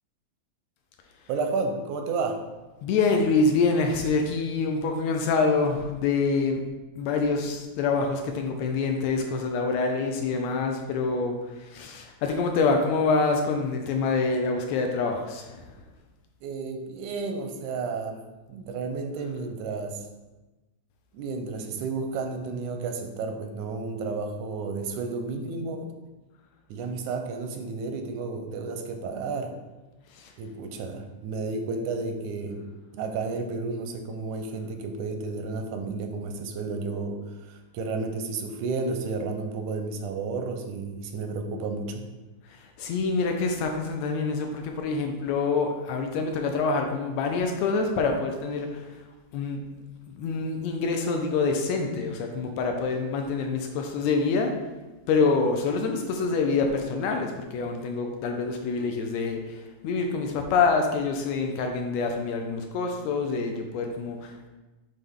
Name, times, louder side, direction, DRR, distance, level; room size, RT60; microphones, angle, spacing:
voice 1, 1.3-2.4 16.4-18.2 18.5-20.1 21.1-25.9 26.7-29.5 30.4-32.6 32.9-42.0, right 4 dB, 85° right, 5 dB, 2.0 m, -32 dB
voice 2, 2.8-6.6 7.0-15.8 30.1-30.3 42.5-49.0 49.3-49.6 50.2-54.5 55.1-64.5, left 4 dB, 75° left, 3 dB, 1.7 m, -26 dB
7.7 x 3.4 x 3.6 m, 1.1 s
omnidirectional pair, 3.4 m